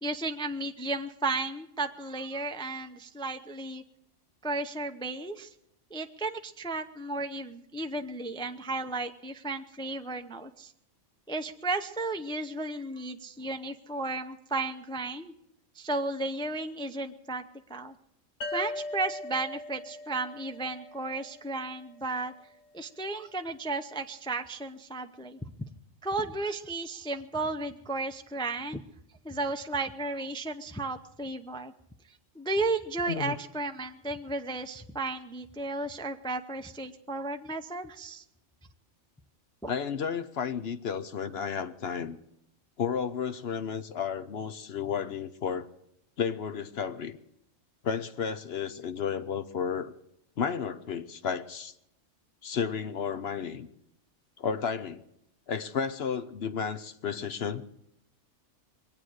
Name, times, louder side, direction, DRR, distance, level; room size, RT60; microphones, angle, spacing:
voice 1, 0.0-3.8 4.4-5.5 5.9-10.7 11.3-15.3 15.7-17.4 17.7-18.0 18.5-22.3 22.7-25.4 26.0-28.8 29.2-31.7 32.3-38.2 39.6-39.7, right 2 dB, 5° left, 6 dB, 0.4 m, -34 dB
sound 1, 18.4-21.9, left 2 dB, 85° left, 1.6 m, -40 dB
voice 2, 39.7-42.2 42.8-45.7 46.2-47.2 47.8-49.9 50.4-51.7 52.4-53.7 54.4-55.0 55.5-57.6, left 7 dB, 60° left, 11 dB, 0.9 m, -32 dB
22.5 x 8.9 x 6.4 m, 0.77 s
omnidirectional pair, 1.3 m